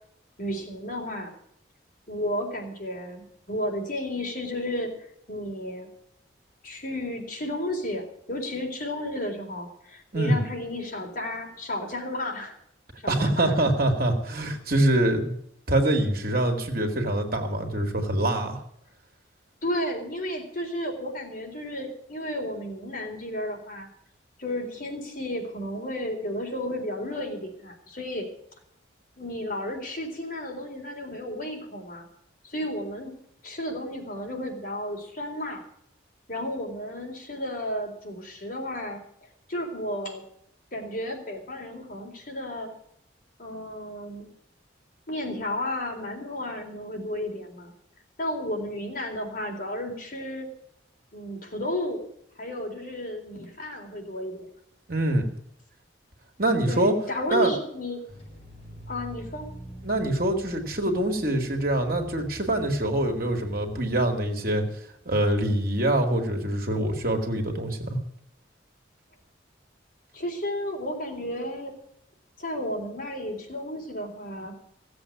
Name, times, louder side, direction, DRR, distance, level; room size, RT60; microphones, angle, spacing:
voice 1, 0.4-1.3 2.1-4.9 5.3-5.9 6.6-12.5 13.0-13.5 19.6-23.9 24.4-28.3 29.2-32.1 32.4-33.1 33.4-35.6 36.3-39.0 39.5-40.2 40.7-42.7 43.4-44.3 45.1-47.7 48.2-50.5 51.1-52.0 52.4-54.5 56.7-58.0 58.9-59.5 70.1-71.7 72.4-74.6, left 1 dB, 45° left, 0 dB, 4.1 m, -33 dB
voice 2, 13.1-15.3 15.7-18.6 54.9-55.3 56.4-56.9 57.3-57.5 59.8-64.6 65.1-68.0, right 1 dB, 50° right, 3 dB, 2.3 m, -24 dB
sound 1, 58.1-64.0, right 1 dB, 30° left, 7.4 m, -44 dB
16.5 x 8.0 x 8.4 m, 0.73 s
head